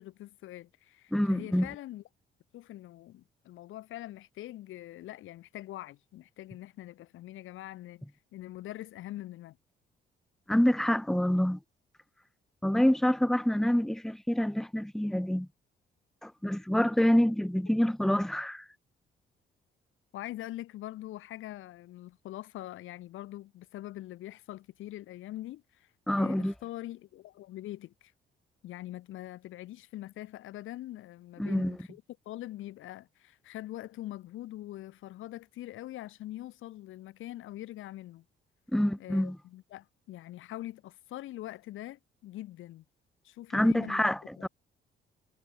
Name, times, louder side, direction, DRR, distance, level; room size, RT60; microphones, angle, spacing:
voice 1, 0.0-2.0 2.5-8.1 8.3-9.6 20.1-25.9 26.2-28.1 28.6-38.2 39.0-42.8 43.2-44.0 44.4-44.5, left 15 dB, 85° left, 2.0 m, -43 dB
voice 2, 1.1-1.7 10.5-11.6 12.6-15.5 16.2-18.6 26.1-26.5 31.4-31.8 38.7-39.4 43.5-44.5, equal, ahead, 1.2 m, -26 dB
cardioid pair, 90°, 20 cm